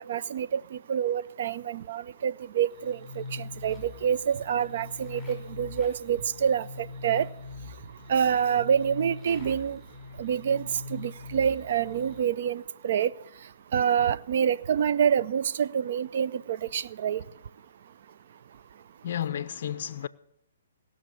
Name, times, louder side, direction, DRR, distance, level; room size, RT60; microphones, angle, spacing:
voice 1, 0.0-7.3 8.1-9.8 10.2-13.1 13.7-17.2, right 8 dB, 55° right, 0.5 m, -27 dB
sound 1, 2.7-12.2, left 3 dB, ahead, 5.6 m, -42 dB
voice 2, 19.0-20.1, left 10 dB, 55° left, 0.4 m, -32 dB
17.5 x 6.5 x 8.4 m
hypercardioid pair, 135°, 0 cm